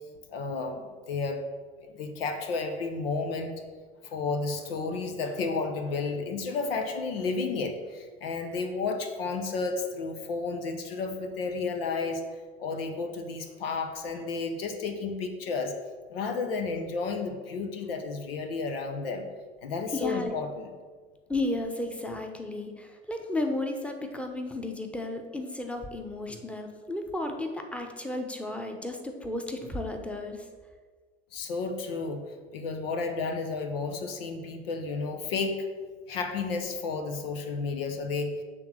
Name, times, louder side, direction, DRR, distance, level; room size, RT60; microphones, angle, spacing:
voice 1, 0.3-1.4 1.8-3.5 4.0-12.2 12.6-15.7 16.1-19.3 19.6-20.7 31.3-32.2 32.5-35.6 36.1-38.4, left 4 dB, 75° left, 5 dB, 0.8 m, -32 dB
voice 2, 19.9-20.3 21.3-30.5, left 2 dB, 5° left, 4 dB, 1.0 m, -33 dB
7.0 x 3.7 x 6.3 m, 1.5 s
figure-of-eight pair, 65°, 30 cm